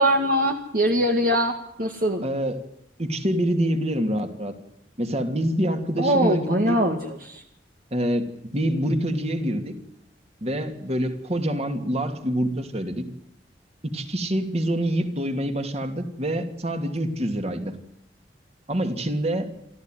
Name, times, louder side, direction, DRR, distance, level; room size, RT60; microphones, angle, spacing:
voice 1, 0.0-2.2 6.0-7.4, equal, 55° right, 4 dB, 2.1 m, -22 dB
voice 2, 2.2-2.6 3.0-4.5 5.0-6.8 7.9-8.3 8.5-9.7 10.4-13.1 13.8-17.8 18.7-19.5, right 1 dB, 35° right, 7 dB, 2.9 m, -26 dB
28.0 x 14.0 x 9.3 m, 0.79 s
head